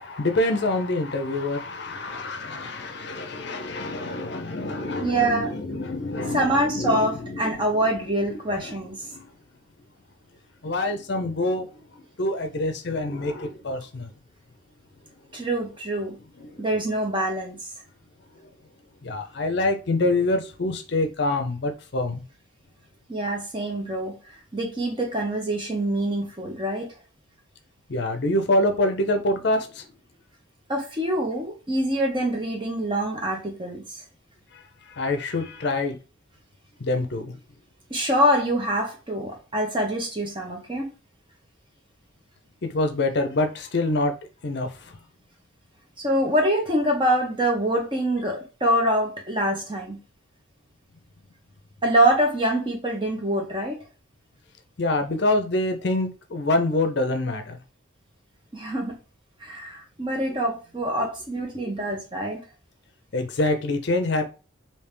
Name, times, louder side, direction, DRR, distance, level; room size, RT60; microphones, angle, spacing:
voice 1, 0.0-7.1 9.1-9.3 10.6-11.7 12.2-14.1 19.0-22.2 27.9-29.8 34.9-36.0 36.8-37.3 42.6-44.1 44.4-44.7 54.8-57.6 63.1-64.2, left 2 dB, 55° left, 0.6 m, -25 dB
voice 2, 5.0-5.5 6.2-9.0 15.3-16.2 16.6-17.7 23.1-24.1 24.5-26.9 30.7-34.0 37.9-40.9 46.0-50.0 51.8-53.8 58.5-58.9 59.4-62.4, right 1 dB, 25° right, 0.9 m, -25 dB
3.3 x 2.7 x 3.3 m
head